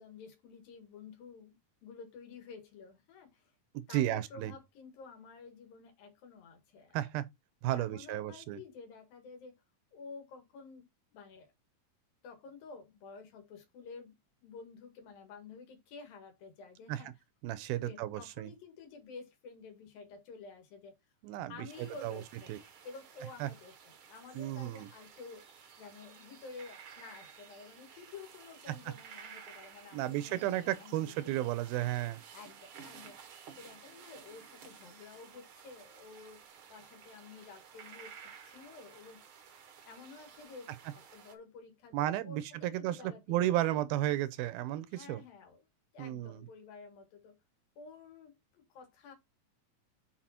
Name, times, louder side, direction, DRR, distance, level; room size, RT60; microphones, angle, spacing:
voice 1, 0.0-1.6 1.8-3.5 3.9-7.1 7.7-9.6 9.9-10.9 11.1-11.5 12.2-14.2 14.4-17.1 17.7-20.9 21.5-22.6 22.8-25.5 25.8-31.5 32.3-33.2 33.6-39.2 39.9-40.7 41.1-43.6 44.9-45.7 45.9-47.4 47.8-49.1, left 4 dB, 75° left, 3.7 m, -51 dB
voice 2, 3.7-4.5 6.9-7.2 7.6-8.6 16.9-17.0 17.4-18.5 21.2-22.2 22.5-22.6 23.4-23.5 24.4-24.9 29.9-32.2 41.9-45.2 46.0-46.5, right 14 dB, 85° right, 2.6 m, -33 dB
sound 1, 21.7-41.3, right 7 dB, 70° right, 1.2 m, -54 dB
7.5 x 4.8 x 4.2 m
omnidirectional pair, 4.2 m